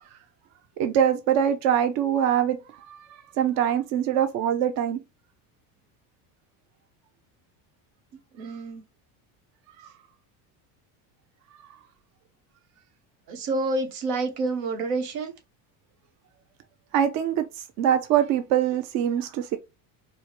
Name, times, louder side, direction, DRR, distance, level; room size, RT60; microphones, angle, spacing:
voice 1, 0.8-2.6 2.9-3.0 3.4-5.0 16.9-17.4 17.8-19.6, right 9 dB, 45° right, 0.4 m, -23 dB
voice 2, 8.4-8.8 13.3-15.3, right 3 dB, 80° right, 1.2 m, -28 dB
4.5 x 2.1 x 3.0 m
cardioid pair, 155°, 40 cm